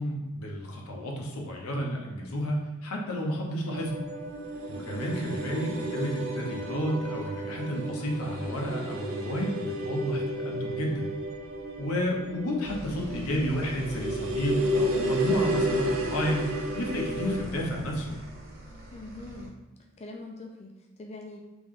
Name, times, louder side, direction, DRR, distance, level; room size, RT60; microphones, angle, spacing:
voice 1, 0.0-4.0 4.7-11.1 11.8-16.5 16.7-18.1, equal, 90° left, 0 dB, 0.8 m, -31 dB
sound 1, 3.7-17.4, right 1 dB, 65° right, 0.6 m, -32 dB
voice 2, 4.9-5.4 18.9-19.5 20.0-21.4, left 2 dB, 30° left, 0 dB, 0.4 m, -43 dB
sound 2, 12.6-19.5, right 1 dB, 45° right, 0.9 m, -43 dB
3.4 x 3.0 x 3.7 m, 1.1 s
head